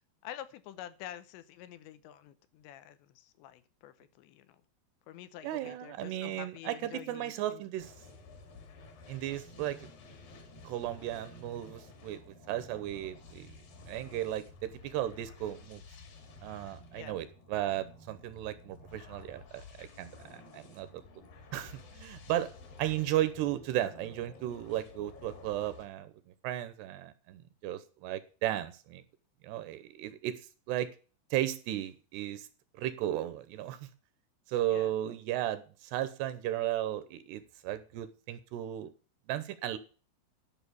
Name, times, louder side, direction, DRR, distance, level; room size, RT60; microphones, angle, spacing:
voice 1, 0.2-4.6 5.1-7.6 16.9-17.2 34.7-34.9, left 12 dB, 80° left, 13 dB, 3.1 m, -48 dB
voice 2, 5.4-7.9 9.1-9.8 10.6-13.5 13.9-15.8 16.4-21.0 21.5-22.5 22.8-26.1 26.4-29.0 29.4-30.4 30.7-30.9 31.3-32.5 32.7-33.9 34.5-38.9 39.3-39.8, right 13 dB, 80° right, 13 dB, 2.8 m, -35 dB
sound 1, 7.8-25.8, left 3 dB, 55° left, 3.7 m, -52 dB
11.5 x 5.8 x 8.3 m, 0.38 s
omnidirectional pair, 5.1 m